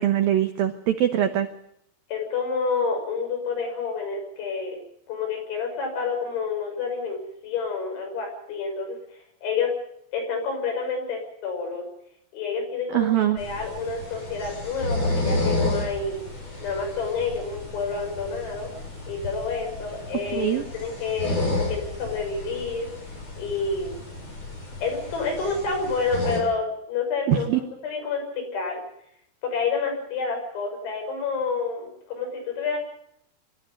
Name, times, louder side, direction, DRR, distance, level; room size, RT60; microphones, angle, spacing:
voice 1, 0.0-1.5 12.9-13.4 20.3-20.6 27.3-27.6, right 11 dB, 80° right, 7 dB, 2.1 m, -22 dB
voice 2, 2.1-4.8 5.1-9.0 9.4-9.7 10.1-11.8 12.3-16.2 16.6-18.7 19.1-22.9 23.4-24.0 24.8-28.8 29.4-32.8, left 4 dB, 65° left, 3 dB, 8.6 m, -29 dB
sound 1, 13.4-26.4, left 2 dB, 30° left, 7.4 m, -31 dB
24.5 x 14.0 x 9.8 m, 0.71 s
omnidirectional pair, 5.8 m